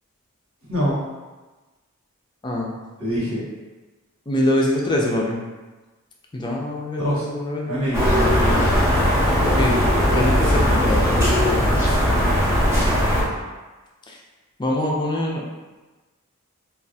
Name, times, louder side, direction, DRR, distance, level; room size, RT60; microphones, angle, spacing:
voice 1, 3.0-3.4 7.0-7.3 7.6-8.8, equal, 75° right, -7 dB, 1.2 m, -25 dB
voice 2, 4.3-5.4 6.3-7.8 9.5-9.8 10.1-11.7 14.1-14.2 14.6-15.4, left 1 dB, 20° left, -1 dB, 0.4 m, -24 dB
sound 1, 7.9-13.2, equal, 15° right, 0.7 m, -18 dB
3.2 x 2.4 x 2.6 m, 1.2 s
head